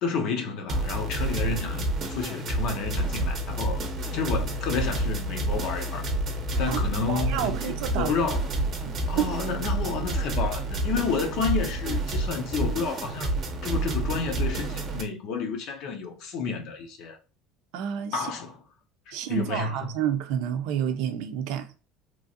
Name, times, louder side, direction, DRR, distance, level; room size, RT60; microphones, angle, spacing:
voice 1, 0.0-3.8 4.1-6.0 6.6-8.5 9.1-13.3 13.6-17.2 18.1-18.5 19.1-19.9, left 5 dB, 65° left, 0.7 m, -30 dB
sound 1, 0.7-15.0, right 1 dB, 40° right, 0.7 m, -29 dB
voice 2, 7.1-8.1 8.8-9.3 17.7-18.3 19.1-21.7, right 9 dB, 75° right, 0.5 m, -29 dB
3.0 x 2.5 x 2.6 m
cardioid pair, 130°, 0 cm